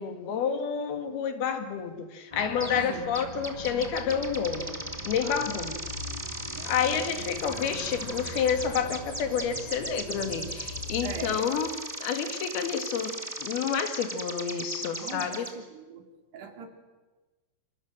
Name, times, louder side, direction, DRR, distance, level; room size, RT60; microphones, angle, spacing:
voice 1, 0.0-4.8 5.1-5.7 6.7-11.7 12.0-15.5, left 7 dB, 75° left, 7 dB, 3.8 m, -29 dB
sound 1, 2.3-10.9, left 1 dB, 25° left, 0.9 m, -43 dB
sound 2, 2.6-2.9 3.1-15.5, right 1 dB, 5° right, 1.3 m, -38 dB
voice 2, 2.8-3.1 5.2-5.4 6.5-7.0 11.0-11.4 15.0-16.0 16.3-16.7, right 6 dB, 90° right, 5 dB, 4.9 m, -41 dB
sound 3, 3.3-11.4, left 2 dB, 45° left, 5.9 m, -44 dB
27.5 x 27.5 x 7.7 m, 1.2 s
omnidirectional pair, 4.6 m